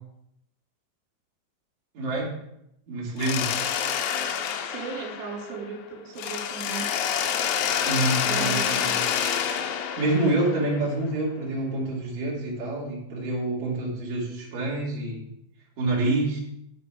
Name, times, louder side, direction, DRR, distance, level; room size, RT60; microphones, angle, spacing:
voice 1, 1.9-2.3 2.9-3.5 7.8-9.0 10.0-15.3 15.8-16.4, right 2 dB, 40° right, -6 dB, 3.9 m, -27 dB
Mechanisms, 3.2-5.8 6.2-11.0, left 8 dB, 80° left, 3.1 m, -28 dB
voice 2, 4.6-7.1 8.1-8.9, right 4 dB, 75° right, 1 dB, 3.6 m, -37 dB
11.0 x 5.3 x 4.7 m, 0.79 s
omnidirectional pair, 5.5 m